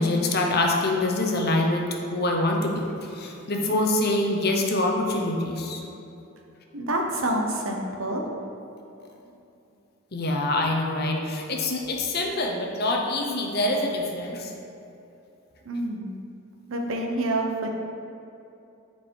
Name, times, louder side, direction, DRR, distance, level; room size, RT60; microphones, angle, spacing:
voice 1, 0.0-5.8 10.1-14.5, left 2 dB, 50° left, 1 dB, 0.8 m, -25 dB
voice 2, 6.7-8.2 15.6-16.1 16.7-17.8, right 1 dB, 75° right, 1 dB, 0.9 m, -27 dB
7.2 x 4.7 x 4.6 m, 2.8 s
head